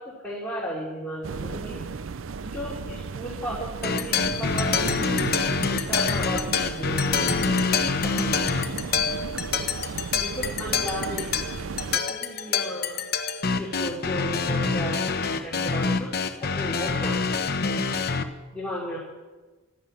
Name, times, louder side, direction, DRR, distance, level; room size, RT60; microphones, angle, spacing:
voice 1, 0.0-1.8 2.4-5.1 5.6-7.6 8.2-8.5 10.1-11.3 11.9-13.0 13.6-16.1 16.4-17.2 18.5-19.0, equal, 5° left, -7 dB, 3.2 m, -35 dB
sound 1, 1.2-12.0, right 5 dB, 60° right, 0.5 m, -35 dB
sound 2, 3.8-18.2, left 5 dB, 45° left, 0.9 m, -26 dB
12.0 x 12.0 x 8.6 m, 1.2 s
head